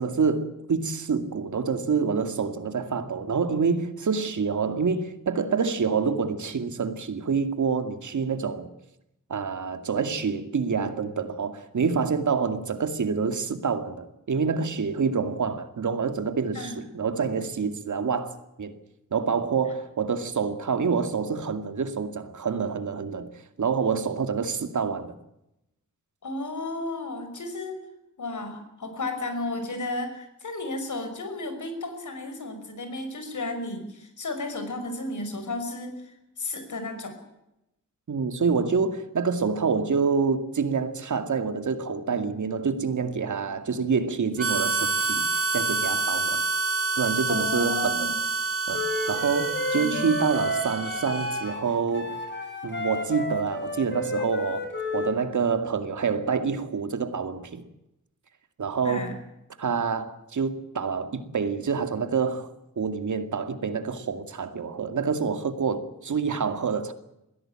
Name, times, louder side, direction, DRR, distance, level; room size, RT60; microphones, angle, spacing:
voice 1, 0.0-8.7 9.3-18.7 19.1-23.3 23.6-25.2 38.1-45.3 45.5-46.4 47.0-48.1 48.7-52.2 52.6-57.6 58.6-59.2 59.6-66.9, right 5 dB, 70° right, 2.2 m, -27 dB
voice 2, 26.2-27.8 28.2-37.1 47.3-48.2 49.8-50.2 58.8-59.1, left 2 dB, 70° left, 5.8 m, -33 dB
Harmonica, 44.4-51.7, right 4 dB, 45° right, 2.9 m, -28 dB
Wind instrument woodwind instrument, 48.7-55.2, left 2 dB, 35° left, 7.0 m, -32 dB
21.5 x 16.5 x 8.8 m
wide cardioid pair, 125°, 31 cm